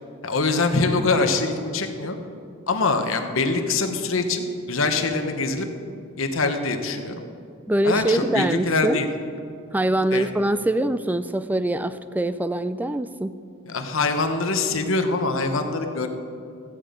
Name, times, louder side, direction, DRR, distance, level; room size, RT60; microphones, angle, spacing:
voice 1, 0.2-2.2 2.7-5.7 6.2-7.2 7.8-9.1 10.1-10.3 13.7-16.1, left 3 dB, 70° left, 6 dB, 1.0 m, -24 dB
voice 2, 7.7-9.0 9.7-13.3, right 1 dB, 10° right, 12 dB, 0.3 m, -23 dB
14.5 x 8.7 x 5.1 m, 2.4 s
head